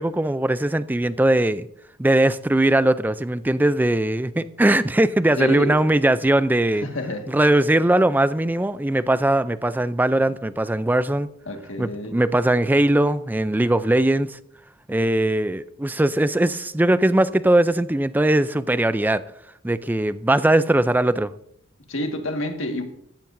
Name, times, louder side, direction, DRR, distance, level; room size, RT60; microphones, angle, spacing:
voice 1, 0.0-1.7 2.0-6.9 7.3-11.3 11.8-14.4 14.9-19.2 19.6-21.3, right 1 dB, 10° right, 0.3 m, -20 dB
voice 2, 5.4-5.7 6.8-7.3 11.5-12.2 21.9-22.8, left 1 dB, 65° left, 1.7 m, -28 dB
15.0 x 13.5 x 2.6 m
head